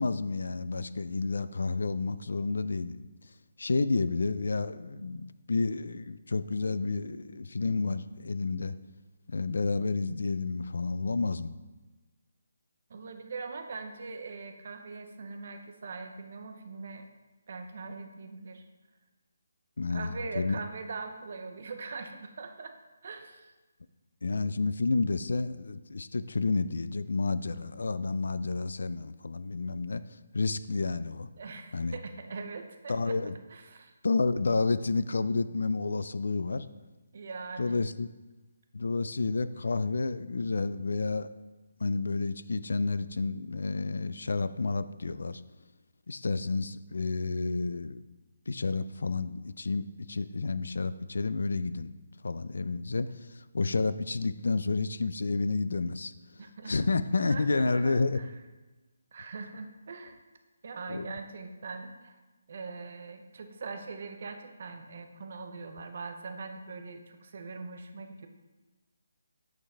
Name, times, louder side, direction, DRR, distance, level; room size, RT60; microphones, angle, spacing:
voice 1, 0.0-3.1 3.6-8.7 9.3-11.6 19.8-20.6 24.2-30.0 30.3-31.3 31.7-32.0 32.9-33.3 34.0-36.7 37.6-38.1 38.7-41.3 41.8-45.4 46.1-48.0 48.5-51.9 52.2-56.1 56.7-58.2 60.9-61.1, left 3 dB, 70° left, 14 dB, 0.3 m, -30 dB
voice 2, 12.9-17.0 17.5-18.6 19.9-22.8 23.0-23.5 31.4-33.2 33.5-33.9 37.1-37.8 56.4-56.9 57.2-58.3 59.1-60.2 60.6-62.2 62.5-68.3, right 4 dB, 40° right, 6 dB, 0.5 m, -41 dB
8.6 x 3.8 x 3.4 m, 1.2 s
hypercardioid pair, 175°, 0 cm